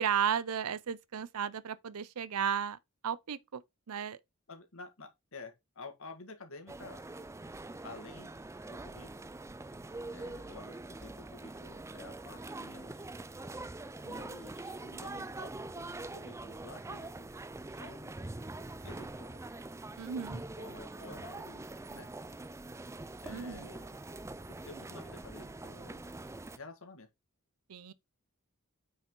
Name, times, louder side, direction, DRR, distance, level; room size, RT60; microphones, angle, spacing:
voice 1, 0.0-2.8 3.0-3.6 3.9-4.2 20.0-20.4 23.3-23.7 27.7-27.9, right 8 dB, 85° right, 0.5 m, -34 dB
voice 2, 4.5-7.0 7.8-8.3 8.6-9.3 10.1-13.1 14.0-17.3 17.7-18.2 18.8-19.4 20.6-21.7 21.9-22.1 23.2-24.0 24.7-26.1 26.5-27.1, left 3 dB, 65° left, 1.8 m, -51 dB
sound 1, 6.7-26.6, right 2 dB, 15° right, 0.4 m, -44 dB
9.0 x 4.9 x 3.8 m
head